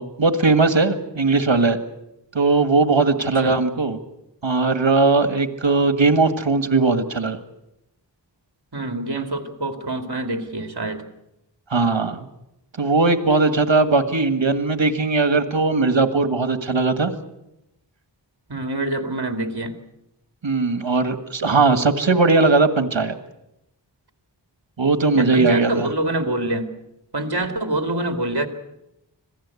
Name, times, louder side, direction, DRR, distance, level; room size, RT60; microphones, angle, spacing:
voice 1, 0.0-1.8 2.3-4.0 4.4-7.4 11.7-12.2 12.8-17.1 20.4-23.1 24.8-25.9, right 3 dB, 80° right, 9 dB, 1.8 m, -19 dB
voice 2, 8.7-11.0 18.5-19.8 25.1-26.7 27.1-28.5, right 1 dB, 60° right, 6 dB, 2.5 m, -25 dB
26.0 x 17.0 x 8.4 m, 0.88 s
wide cardioid pair, 45°, 44 cm